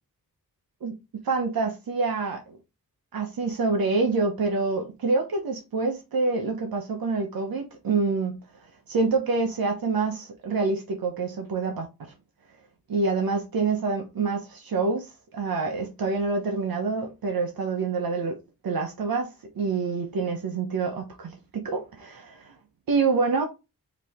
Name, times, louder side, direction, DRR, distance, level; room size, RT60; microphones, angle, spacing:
voice 1, 0.8-2.6 3.1-8.4 8.9-12.1 12.9-18.4 18.6-22.5 22.9-23.5, right 4 dB, 75° right, 1.0 m, -27 dB
4.8 x 3.0 x 3.5 m
wide cardioid pair, 105°, 36 cm